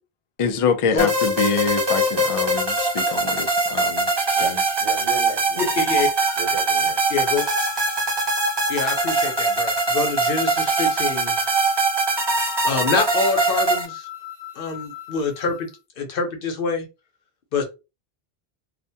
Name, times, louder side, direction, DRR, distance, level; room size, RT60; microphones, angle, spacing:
voice 1, 0.4-4.1 4.4-4.6, left 5 dB, 50° left, 0.4 m, -25 dB
sound 1, 1.0-13.9, right 2 dB, 30° right, 0.6 m, -22 dB
voice 2, 4.8-5.9 6.3-7.1, right 5 dB, 80° right, 1.2 m, -35 dB
voice 3, 5.6-6.1 7.1-7.4 8.7-11.4 12.6-14.1 14.6-15.7 16.0-16.9 17.5-17.6, left 4 dB, 65° left, 0.8 m, -25 dB
sound 2, 6.2-15.8, left 12 dB, 90° left, 1.1 m, -38 dB
2.4 x 2.2 x 2.6 m
omnidirectional pair, 1.0 m